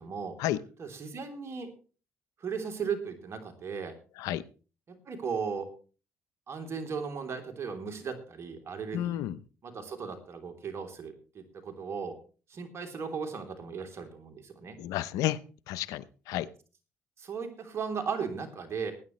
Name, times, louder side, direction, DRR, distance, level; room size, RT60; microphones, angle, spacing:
voice 1, 0.0-0.4 0.8-1.7 2.4-3.9 4.9-5.7 6.5-9.2 9.6-12.1 12.5-14.8 17.2-18.9, right 6 dB, 50° right, 5 dB, 3.2 m, -36 dB
voice 2, 8.9-9.4 14.8-15.4 15.7-16.5, left 13 dB, 85° left, 17 dB, 0.7 m, -31 dB
19.5 x 9.7 x 3.1 m, 0.36 s
supercardioid pair, 65°, 6 cm